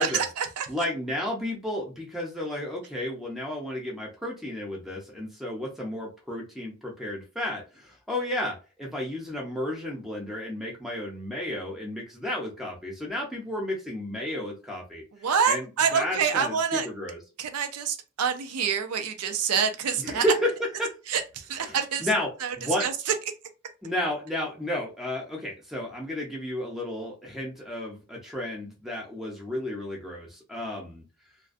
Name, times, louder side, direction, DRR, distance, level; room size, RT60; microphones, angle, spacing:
voice 1, 0.0-0.7 15.2-16.9 17.4-20.2 21.1-22.1 22.4-22.5 22.8-22.9, right 6 dB, 85° right, 0.4 m, -26 dB
voice 2, 0.7-15.0 15.5-15.7 15.9-17.2 20.0-20.5 20.8-20.9 21.6-22.3 22.6-22.9 23.8-31.0, left 1 dB, ahead, 0.5 m, -32 dB
2.4 x 2.1 x 2.4 m
head